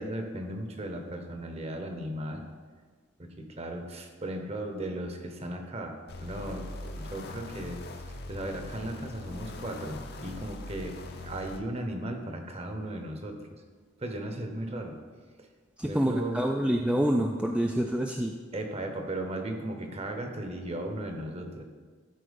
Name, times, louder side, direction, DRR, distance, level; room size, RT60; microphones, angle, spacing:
voice 1, 0.0-2.4 3.2-7.8 8.3-13.4 14.0-15.0 15.4-15.5 15.8-16.4 18.5-21.6, right 1 dB, 30° right, 4 dB, 1.0 m, -36 dB
sound 1, 6.1-11.6, left 2 dB, 50° left, 0.7 m, -41 dB
voice 2, 15.8-18.3, equal, 5° right, 2 dB, 0.3 m, -27 dB
12.0 x 4.4 x 5.2 m, 1.6 s
head